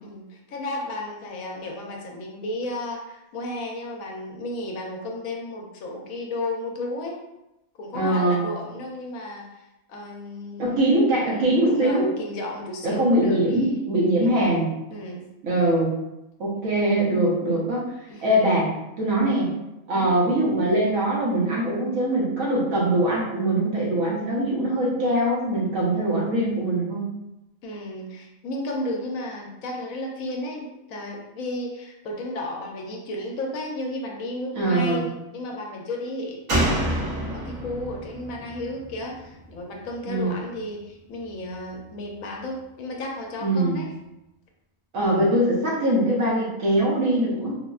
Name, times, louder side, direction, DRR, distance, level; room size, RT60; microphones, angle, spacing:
voice 1, 0.0-7.2 7.8-10.9 11.2-13.8 14.2-14.6 14.9-15.2 18.1-18.3 19.9-20.1 27.6-43.9, left 1 dB, 75° left, 0 dB, 1.0 m, -33 dB
voice 2, 7.9-8.5 10.6-12.1 12.8-14.7 15.4-15.9 16.4-17.8 18.2-18.7 19.0-19.5 19.9-27.0 34.5-35.0 40.1-40.3 43.4-43.8 44.9-47.5, right 1 dB, 70° right, -4 dB, 1.2 m, -22 dB
Slam, 36.5-40.0 40.3-40.4, right 1 dB, 90° right, 1.6 m, -28 dB
3.8 x 2.1 x 2.3 m, 0.92 s
omnidirectional pair, 1.5 m